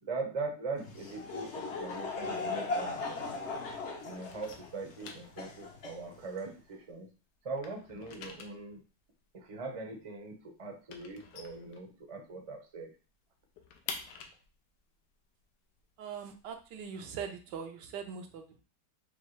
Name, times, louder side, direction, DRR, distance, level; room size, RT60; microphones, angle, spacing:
voice 1, 0.0-3.2 4.0-7.1 7.4-8.8 9.3-12.9, right 3 dB, 40° right, 1 dB, 0.5 m, -41 dB
Laughter / Crowd, 0.8-6.5, left 3 dB, 55° left, 0.8 m, -38 dB
sound 1, 2.2-3.6 3.8-7.1 7.4-12.4 12.7-12.8 13.1-16.8, left 5 dB, 85° left, 1.3 m, -48 dB
voice 2, 16.0-18.6, right 7 dB, 80° right, 5 dB, 1.3 m, -41 dB
5.2 x 2.3 x 3.1 m, 0.34 s
omnidirectional pair, 1.8 m